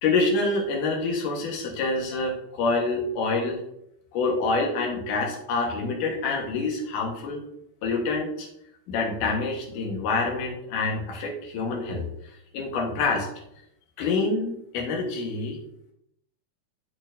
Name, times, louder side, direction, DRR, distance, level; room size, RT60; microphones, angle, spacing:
voice 1, 0.0-3.6 4.1-7.4 7.8-8.5 8.9-12.0 12.5-13.3 14.0-15.6, left 3 dB, 85° left, 0 dB, 2.8 m, -26 dB
12.5 x 4.3 x 2.6 m, 0.79 s
omnidirectional pair, 3.6 m